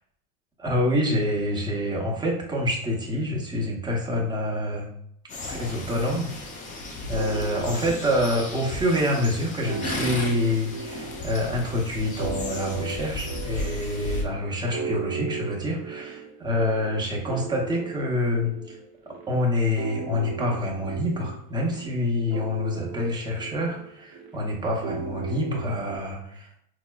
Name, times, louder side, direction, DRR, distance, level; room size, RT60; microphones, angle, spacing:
voice 1, 0.6-4.9 5.4-6.3 6.7-6.8 7.1-18.8 19.3-26.5, left 1 dB, 10° right, -2 dB, 0.7 m, -27 dB
sound 1, 5.3-14.2, left 2 dB, 20° left, 0.3 m, -35 dB
sound 2, 7.1-26.0, right 4 dB, 50° right, 0.8 m, -37 dB
4.3 x 2.0 x 2.2 m, 0.71 s
hypercardioid pair, 100°, 45 cm